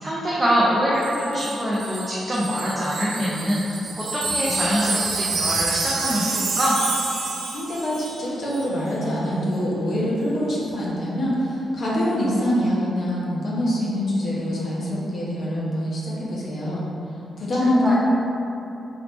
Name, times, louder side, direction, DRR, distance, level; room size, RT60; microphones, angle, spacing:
voice 1, 0.0-3.6 4.0-6.8 17.6-18.0, equal, 15° right, -7 dB, 0.5 m, -24 dB
Wind chime, 1.0-8.3 8.5-8.7, right 3 dB, 75° right, 0.5 m, -28 dB
voice 2, 7.5-16.8 17.4-18.0, equal, 50° left, -6 dB, 0.9 m, -24 dB
3.4 x 3.0 x 3.9 m, 2.9 s
wide cardioid pair, 170°, 0 cm